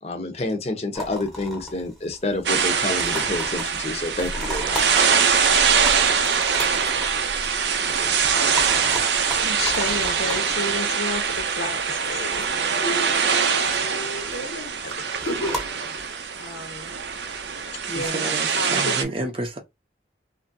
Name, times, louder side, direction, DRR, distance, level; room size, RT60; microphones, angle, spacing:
voice 1, 0.0-5.0, left 2 dB, 35° left, 0.7 m, -28 dB
sound 1, 0.9-18.1, left 1 dB, ahead, 0.8 m, -37 dB
sound 2, 2.5-19.0, right 6 dB, 80° right, 0.5 m, -23 dB
voice 2, 9.4-12.5 12.8-17.0 17.9-19.0, left 1 dB, 85° left, 1.0 m, -32 dB
voice 3, 17.9-19.6, right 1 dB, 30° right, 0.6 m, -30 dB
2.8 x 2.6 x 2.6 m
head